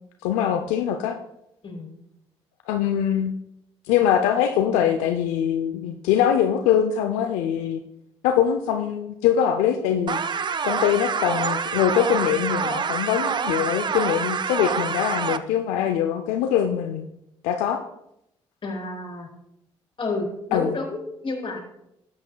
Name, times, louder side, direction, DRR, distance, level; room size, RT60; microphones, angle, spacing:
voice 1, 0.2-1.2 2.7-3.3 3.9-7.8 8.2-10.2 10.6-17.1 17.4-17.8 20.5-20.8, left 9 dB, 90° left, 6 dB, 0.5 m, -23 dB
sound 1, 10.1-15.4, right 6 dB, 40° right, 0.5 m, -26 dB
voice 2, 18.6-19.3 20.0-21.6, left 3 dB, 45° left, 1 dB, 3.5 m, -30 dB
12.5 x 8.1 x 2.3 m, 0.79 s
supercardioid pair, 65°, 12 cm